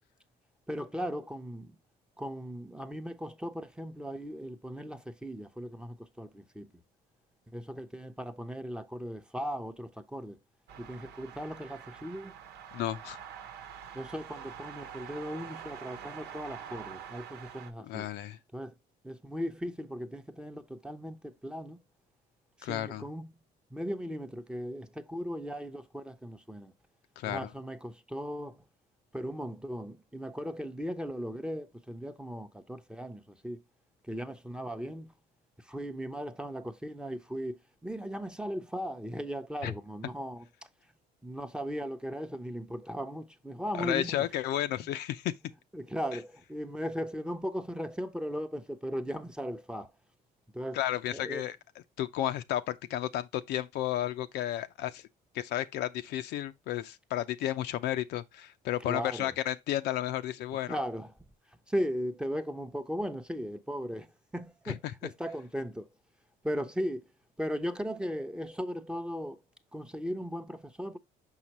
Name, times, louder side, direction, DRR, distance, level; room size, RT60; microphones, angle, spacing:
voice 1, 0.7-1.7 2.2-6.3 6.6-6.7 7.5-10.4 10.8-12.3 13.9-18.1 18.5-18.7 19.0-21.8 22.7-23.3 23.7-26.7 27.3-28.6 29.1-33.6 34.1-35.1 35.7-40.4 41.2-44.3 45.7-49.9 50.5-50.8 51.1-51.4 58.9-59.3 60.7-61.1 61.7-64.1 64.3-64.8 65.0-65.9 66.4-67.0 67.4-69.4 69.7-71.0, equal, 5° right, 0.7 m, -37 dB
sound 1, 10.7-17.7, right 8 dB, 85° right, 1.1 m, -46 dB
voice 2, 12.7-13.2 17.8-18.4 22.6-23.1 27.2-27.5 39.6-39.8 43.7-45.3 46.1-46.2 50.7-55.0 55.3-60.8 64.6-64.9, left 12 dB, 80° left, 0.6 m, -33 dB
6.0 x 5.7 x 2.9 m
cardioid pair, 110°, 17 cm